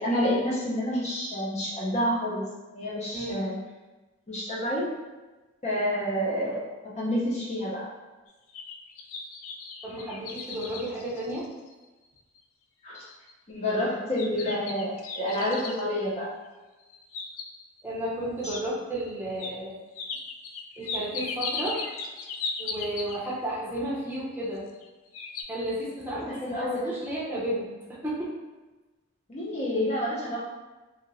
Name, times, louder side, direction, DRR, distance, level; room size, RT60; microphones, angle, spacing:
voice 1, 0.0-2.4 2.7-3.6 4.3-4.9 5.6-7.9 12.8-13.0 13.5-16.3 18.4-18.5 26.4-26.9 29.3-30.5, equal, 30° left, -5 dB, 0.6 m, -28 dB
voice 2, 3.1-3.4 9.8-11.5 17.8-19.7 20.8-21.8 22.6-24.6 25.5-28.3, right 1 dB, 10° right, -8 dB, 0.7 m, -33 dB
sound 1, 8.3-11.8 12.4-12.5 12.9-13.3 14.2-15.8 16.8-17.8 18.5-18.6 19.4-19.5 20.0-23.4 24.4-24.9 25.1-25.4, left 4 dB, 75° left, 0.3 m, -37 dB
2.9 x 2.8 x 2.6 m, 1.2 s
head